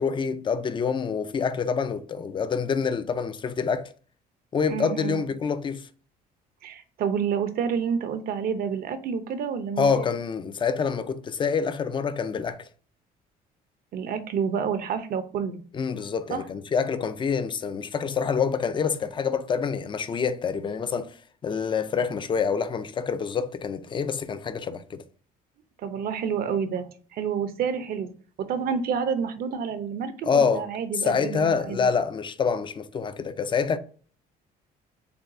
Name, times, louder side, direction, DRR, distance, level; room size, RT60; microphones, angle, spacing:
voice 1, 0.0-3.9 4.5-5.9 9.8-12.7 15.7-21.1 21.4-25.0 30.2-30.7 30.9-33.8, left 6 dB, 30° left, 0.5 m, -26 dB
voice 2, 4.7-5.2 6.6-10.0 13.9-15.6 16.3-16.4 25.8-28.1 28.4-31.8, right 7 dB, 60° right, 0.7 m, -29 dB
6.8 x 2.3 x 2.6 m
cardioid pair, 110°, 17 cm